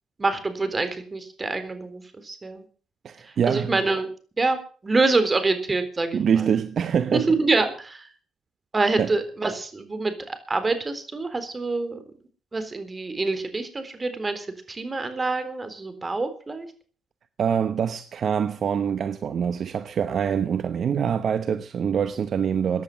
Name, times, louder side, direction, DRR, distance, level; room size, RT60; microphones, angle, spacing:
voice 1, 0.2-2.7 3.2-4.1 4.4-4.6 4.8-6.5 7.1-8.1 8.7-12.0 12.5-16.7, right 3 dB, 25° right, 3.8 m, -26 dB
voice 2, 3.0-3.7 6.1-7.3 9.0-9.1 17.4-22.8, right 7 dB, 55° right, 0.9 m, -24 dB
15.5 x 10.5 x 7.3 m
cardioid pair, 90°, 0 cm